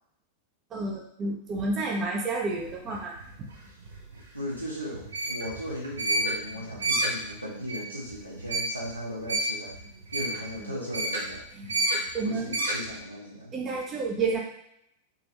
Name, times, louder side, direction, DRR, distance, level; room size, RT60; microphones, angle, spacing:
voice 1, 0.7-3.5 12.1-12.6 13.5-14.4, right 3 dB, 25° right, -1 dB, 0.8 m, -30 dB
sound 1, 2.4-13.0, right 1 dB, 70° right, 0.8 m, -31 dB
voice 2, 4.3-9.7 10.1-11.4 12.2-13.5, equal, 90° right, -6 dB, 1.2 m, -37 dB
3.7 x 2.9 x 3.0 m, 0.74 s
figure-of-eight pair, 90°, 0 cm